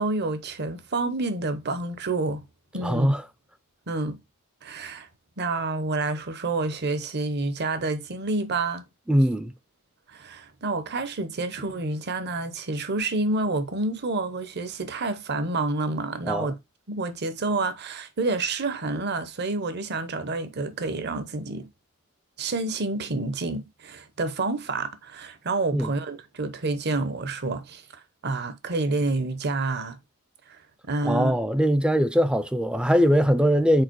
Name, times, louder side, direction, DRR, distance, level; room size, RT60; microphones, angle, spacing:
voice 1, 0.0-2.4 2.7-3.1 3.9-4.2 4.6-5.1 5.4-8.8 10.1-16.5 16.9-21.7 22.4-30.0 30.5-30.6 30.9-31.3, right 3 dB, 50° right, 0.9 m, -28 dB
voice 2, 2.8-3.2 9.1-9.5 16.2-16.5 25.7-25.9 31.0-33.8, equal, 5° right, 0.4 m, -21 dB
4.8 x 4.2 x 4.6 m
head